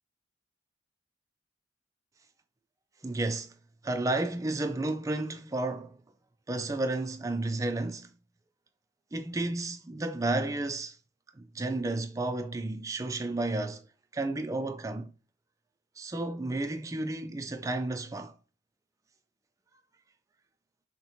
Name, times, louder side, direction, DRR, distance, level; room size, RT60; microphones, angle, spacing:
voice 1, 3.0-3.5 3.8-6.0 6.5-8.1 9.1-11.0 11.3-13.8 14.1-15.1 16.0-18.3, right 2 dB, 20° right, 0.3 m, -32 dB
5.8 x 2.1 x 3.0 m
head